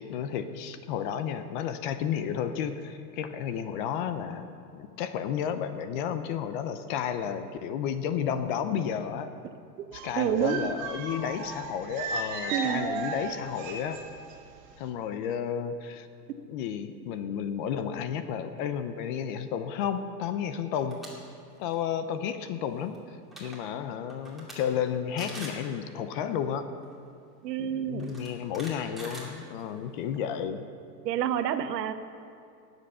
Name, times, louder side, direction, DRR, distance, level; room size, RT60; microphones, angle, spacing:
voice 1, 0.0-9.3 9.9-14.0 14.8-16.1 16.5-21.0 21.6-26.7 27.6-30.7, left 8 dB, 35° left, 10 dB, 0.6 m, -32 dB
sound 1, 9.9-14.4 14.6-14.8, right 4 dB, 55° right, 2.0 m, -35 dB
voice 2, 10.2-10.7 12.5-12.9 27.4-28.2 31.0-31.9, right 9 dB, 85° right, 10 dB, 1.0 m, -28 dB
sound 2, 20.8-21.1 21.5-21.7 22.9-23.0 23.2-23.6 24.1-24.6 24.9-25.0 25.2-25.6 26.8-26.9 28.0-29.9, right 1 dB, ahead, 2.2 m, -43 dB
18.5 x 8.0 x 5.6 m, 2.4 s
supercardioid pair, 150°, 48 cm